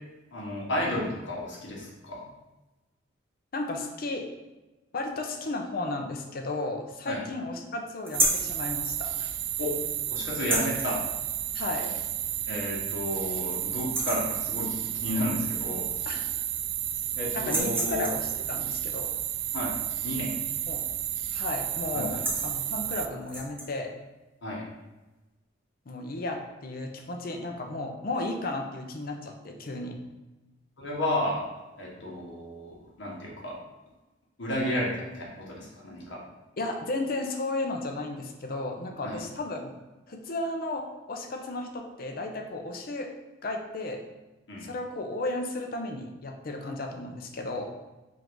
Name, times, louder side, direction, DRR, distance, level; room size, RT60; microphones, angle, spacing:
voice 1, 0.3-2.3 7.1-7.2 9.6-9.8 10.1-11.0 12.5-15.9 17.1-18.1 19.5-19.8 20.0-20.4 21.9-22.2 24.4-24.7 30.8-31.5 31.8-33.6 34.4-36.2 39.0-39.2 44.5-44.7, left 1 dB, 65° left, -3 dB, 1.1 m, -32 dB
voice 2, 3.5-4.2 4.9-9.3 11.5-12.0 16.1-16.3 17.3-19.1 20.7-20.8 21.3-23.9 25.9-30.0 36.6-39.7 40.1-43.1 43.4-44.0 44.6-47.7, left 2 dB, 50° left, 3 dB, 0.5 m, -34 dB
sound 1, 8.1-8.5 10.3-10.9 12.2-12.3 12.8-12.9 13.3-13.5 13.8-14.3 15.7-15.8 16.1-16.8 17.4-18.3 20.6-21.0 21.2-21.5 22.0-22.5 23.2-23.7, right 1 dB, 10° right, 0.5 m, -30 dB
sound 2, 8.1-23.1, right 11 dB, 65° right, 0.3 m, -32 dB
3.7 x 2.5 x 4.5 m, 1.1 s
head